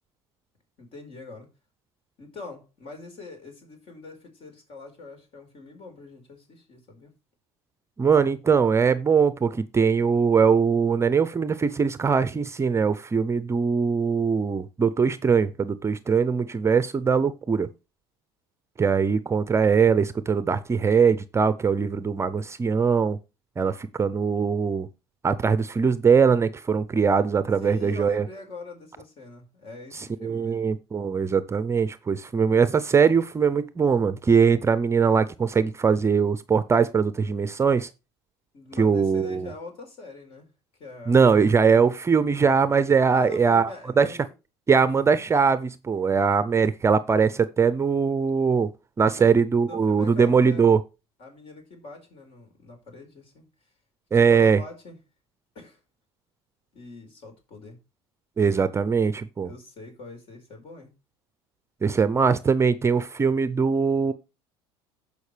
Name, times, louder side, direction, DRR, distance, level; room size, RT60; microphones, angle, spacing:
voice 1, 0.8-1.5 2.2-7.1 27.6-30.7 38.5-40.5 40.8-41.5 43.1-44.2 49.1-49.3 49.6-50.6 51.2-53.5 54.1-55.0 55.5-55.8 56.7-57.8 59.4-60.9, left 3 dB, 50° left, 4.7 m, -43 dB
voice 2, 8.0-17.7 18.8-23.2 23.6-24.9 25.2-28.3 30.0-37.9 38.8-39.5 41.1-43.7 44.0-44.1 44.7-48.7 49.0-50.8 54.1-54.6 58.4-59.5 61.8-64.1, right 5 dB, 20° right, 0.6 m, -21 dB
15.5 x 5.3 x 3.3 m
supercardioid pair, 85°, 12 cm